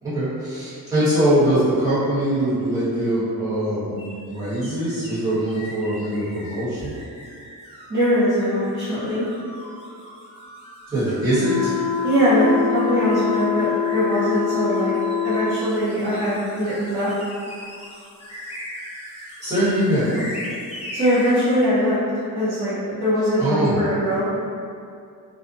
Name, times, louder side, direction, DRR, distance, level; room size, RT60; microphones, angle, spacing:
voice 1, 0.0-6.9 10.9-11.7 19.4-20.3 23.4-23.9, right 1 dB, 10° right, -15 dB, 1.2 m, -22 dB
sound 1, 4.0-21.7, left 1 dB, 15° left, 0.4 m, -40 dB
voice 2, 7.9-9.2 12.0-13.7 13.9-14.9 15.2-17.1 20.9-22.0 22.3-24.3, equal, 35° right, -16 dB, 0.8 m, -21 dB
sound 2, 11.3-15.5, left 8 dB, 35° left, 0.8 m, -25 dB
2.5 x 2.3 x 2.5 m, 2.4 s
wide cardioid pair, 160°, 37 cm